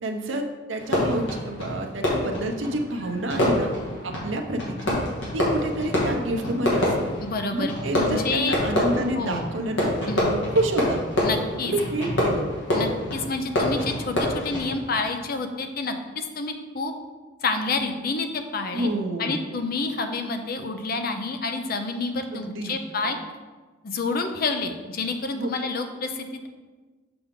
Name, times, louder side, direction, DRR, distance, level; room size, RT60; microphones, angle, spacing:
voice 1, 0.0-3.7 4.0-5.0 5.3-7.1 7.5-11.0 11.6-12.5 18.7-19.5 22.3-22.8 23.0-23.1 25.3-25.5, right 1 dB, 75° right, 4 dB, 0.7 m, -28 dB
Fireworks, 0.8-15.0, left 1 dB, 65° left, 1.9 m, -27 dB
voice 2, 7.2-8.6 9.1-9.5 10.1-10.3 11.2-11.7 12.7-16.9 17.4-18.9 19.2-23.2 23.8-26.5, left 3 dB, 50° left, 6 dB, 0.6 m, -29 dB
6.9 x 4.8 x 3.7 m, 1.3 s
head